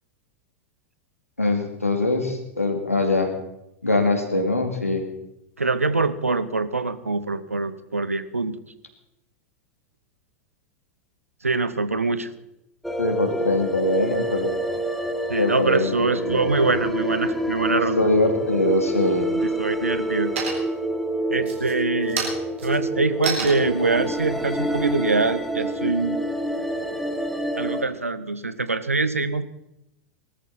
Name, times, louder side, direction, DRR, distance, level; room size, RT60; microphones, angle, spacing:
voice 1, 1.4-3.3 3.8-5.0 13.0-14.6 15.4-16.5 17.7-19.3, left 2 dB, 90° left, 4 dB, 2.4 m, -23 dB
voice 2, 5.6-8.6 11.4-12.3 15.3-18.1 19.4-20.3 21.3-22.3 22.6-26.2 27.6-29.4, right 3 dB, 85° right, 14 dB, 0.9 m, -24 dB
sound 1, 12.8-27.9, right 1 dB, ahead, 1.3 m, -27 dB
sound 2, 19.8-20.1 20.4-20.9 21.4-25.8, right 5 dB, 65° right, 3.9 m, -32 dB
19.5 x 13.5 x 4.2 m, 0.87 s
figure-of-eight pair, 95°, 7 cm